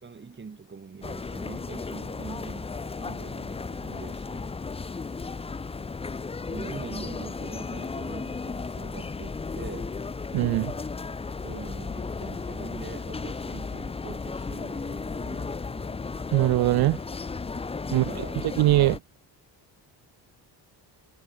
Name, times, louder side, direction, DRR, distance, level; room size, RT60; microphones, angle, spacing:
voice 1, 0.0-4.6 6.5-10.0 11.4-16.0 17.9-18.4, right 5 dB, 25° right, 4.4 m, -43 dB
sound 1, 1.0-19.0, left 4 dB, 15° left, 0.6 m, -35 dB
voice 2, 10.3-10.7 16.3-17.0 17.9-18.0 18.6-19.0, right 16 dB, 60° right, 0.6 m, -21 dB
cardioid pair, 145°, 42 cm